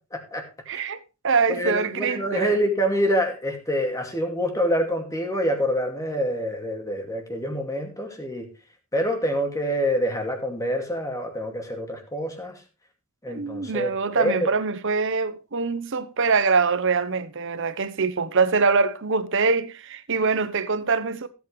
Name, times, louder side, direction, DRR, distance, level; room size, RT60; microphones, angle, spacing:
voice 1, 0.1-0.4 0.7-0.9 1.5-8.5 8.9-12.6 13.2-14.5, equal, 15° left, 2.4 m, -26 dB
voice 2, 0.7-2.6 13.3-21.3, right 4 dB, 60° right, 1.0 m, -24 dB
16.0 x 8.4 x 3.3 m
head